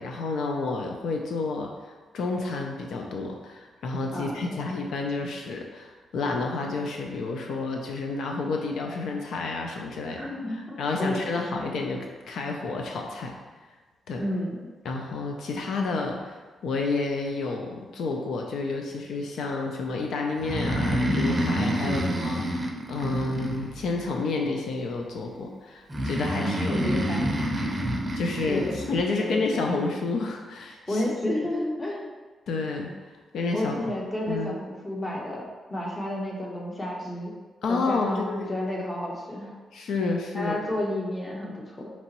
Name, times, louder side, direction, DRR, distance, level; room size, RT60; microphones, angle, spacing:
voice 1, 0.0-13.4 14.1-14.2 14.8-27.4 28.1-31.0 32.5-32.9 33.3-33.7 34.3-34.5 37.6-38.5 39.7-40.6, left 3 dB, 80° left, 2 dB, 0.4 m, -30 dB
voice 2, 4.1-4.7 10.1-11.4 14.2-14.7 21.8-22.5 26.4-27.2 28.5-28.8 29.2-29.8 30.9-32.1 33.5-37.3 37.7-39.5 40.3-41.9, left 1 dB, 20° left, -2 dB, 0.9 m, -31 dB
Breathing, 20.4-24.1 25.9-29.0, equal, 20° right, 0.6 m, -28 dB
5.3 x 2.9 x 2.9 m, 1.3 s
cardioid pair, 105°, 0 cm